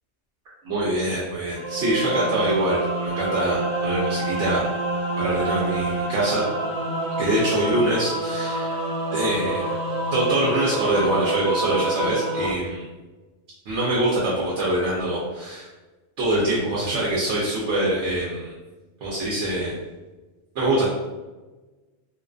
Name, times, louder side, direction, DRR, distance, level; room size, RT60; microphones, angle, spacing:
voice 1, 0.7-4.7 5.2-6.4 7.2-8.8 9.1-9.7 10.1-12.8 13.7-15.7 16.2-18.5 19.0-19.7 20.5-20.9, right 1 dB, 90° right, -6 dB, 0.9 m, -24 dB
sound 1, 1.5-12.5, right 2 dB, 60° right, 0.5 m, -27 dB
2.4 x 2.3 x 2.4 m, 1.2 s
omnidirectional pair, 1.2 m